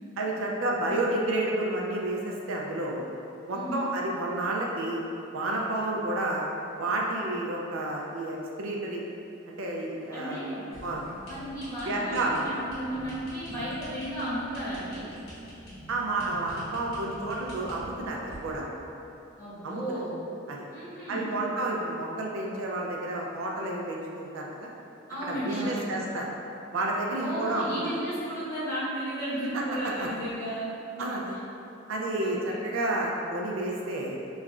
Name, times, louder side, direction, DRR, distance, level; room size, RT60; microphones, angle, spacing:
voice 1, 0.2-3.0 3.5-5.0 5.3-6.5 6.8-9.0 9.5-10.4 10.8-11.0 11.8-12.4 15.9-18.7 19.6-19.8 20.5-20.6 21.1-24.7 25.2-26.3 26.7-27.8 29.5-30.1 31.0-31.4 31.9-34.2, right 2 dB, 70° right, -2 dB, 0.4 m, -30 dB
voice 2, 3.5-3.8 10.1-10.6 11.3-15.0 19.4-20.2 20.7-21.3 25.1-25.9 27.1-30.7 31.3-31.4 32.2-32.6, right 1 dB, 15° left, -12 dB, 1.0 m, -34 dB
sound 1, 10.7-18.6, equal, 85° left, 1.4 m, -45 dB
3.0 x 2.4 x 3.5 m, 2.8 s
head